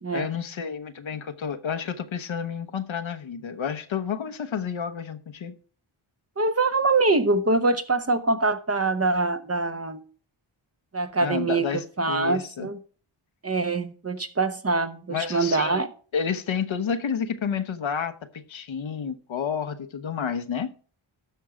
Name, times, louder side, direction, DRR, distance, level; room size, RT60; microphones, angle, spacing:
voice 1, 0.1-5.6 11.2-12.7 15.1-15.8 16.1-20.7, left 7 dB, 65° left, 0.9 m, -30 dB
voice 2, 6.4-10.0 10.9-12.8 13.4-15.9, right 3 dB, 30° right, 0.9 m, -24 dB
12.5 x 4.6 x 5.0 m
cardioid pair, 60°, 50 cm